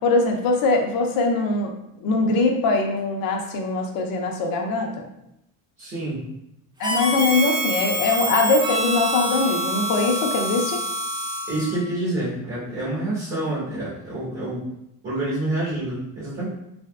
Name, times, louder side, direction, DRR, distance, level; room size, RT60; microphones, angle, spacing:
voice 1, 0.0-1.7 2.0-5.1 6.8-10.8, left 3 dB, 65° left, 2 dB, 0.6 m, -22 dB
voice 2, 5.8-6.3 11.5-14.7 15.0-16.4, right 1 dB, 35° right, -8 dB, 1.1 m, -27 dB
Harmonica, 6.8-11.9, right 1 dB, 10° right, 0.5 m, -26 dB
3.4 x 2.7 x 2.3 m, 0.84 s
cardioid pair, 125°, 38 cm